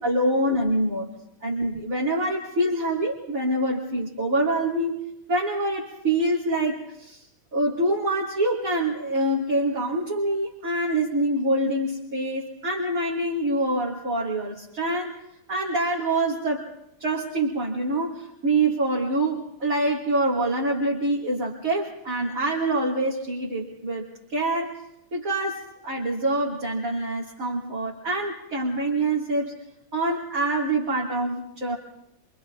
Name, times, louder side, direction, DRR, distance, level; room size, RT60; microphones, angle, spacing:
voice 1, 0.0-1.1 1.4-5.0 5.3-7.2 7.5-15.2 15.5-16.7 17.0-24.8 25.1-29.6 29.9-31.8, right 1 dB, 40° right, -4 dB, 4.0 m, -25 dB
28.0 x 27.5 x 3.9 m, 0.84 s
omnidirectional pair, 2.2 m